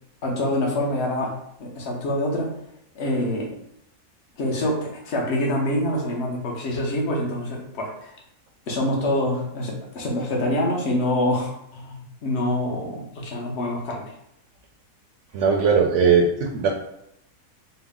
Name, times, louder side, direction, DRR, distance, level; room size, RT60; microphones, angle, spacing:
voice 1, 0.2-1.3 1.6-2.6 2.9-3.5 4.4-8.2 8.7-14.1, left 1 dB, 50° left, -1 dB, 1.1 m, -26 dB
voice 2, 15.3-16.7, right 5 dB, 65° right, 1 dB, 0.8 m, -19 dB
4.4 x 2.1 x 3.6 m, 0.77 s
omnidirectional pair, 1.6 m